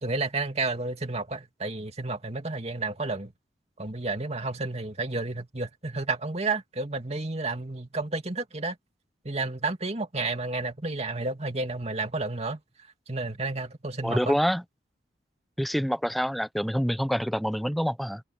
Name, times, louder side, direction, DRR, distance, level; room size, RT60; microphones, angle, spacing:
voice 1, 0.0-3.3 3.8-8.8 9.2-12.6 13.1-14.4, right 3 dB, 35° right, 2.5 m, -31 dB
voice 2, 14.0-14.6 15.6-18.2, equal, ahead, 0.9 m, -26 dB
head